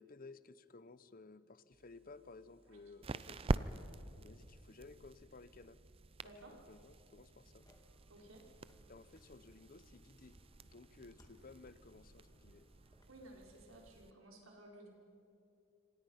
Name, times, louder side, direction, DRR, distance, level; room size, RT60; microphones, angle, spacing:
voice 1, 0.0-3.7 4.2-5.8 6.2-7.7 8.9-12.7, left 3 dB, 45° left, 15 dB, 0.8 m, -57 dB
sound 1, 1.7-14.1, right 2 dB, 30° right, 0.5 m, -46 dB
voice 2, 6.2-6.6 8.1-8.4 13.1-14.9, right 1 dB, 90° right, -1 dB, 5.4 m, -56 dB
sound 2, 7.6-13.0, left 1 dB, 20° left, 2.3 m, -68 dB
26.5 x 26.5 x 5.8 m, 2.8 s
head